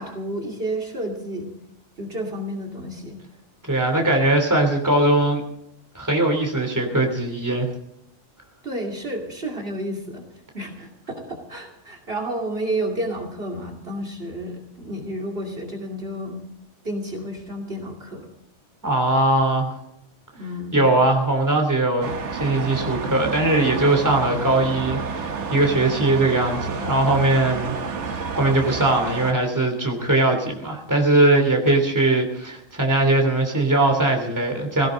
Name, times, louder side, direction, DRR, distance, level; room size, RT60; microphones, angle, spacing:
voice 1, 0.0-1.5 2.0-3.2 8.6-10.2 10.5-16.4 16.8-18.3 20.4-20.8, right 1 dB, 50° right, 3 dB, 2.8 m, -31 dB
voice 2, 3.7-5.4 5.9-7.7 18.8-19.8 20.7-27.8 28.1-34.9, right 2 dB, 15° right, 3 dB, 3.0 m, -20 dB
sound 1, 22.0-29.3, right 5 dB, 70° right, 1.5 m, -30 dB
17.0 x 17.0 x 3.8 m, 0.78 s
omnidirectional pair, 1.3 m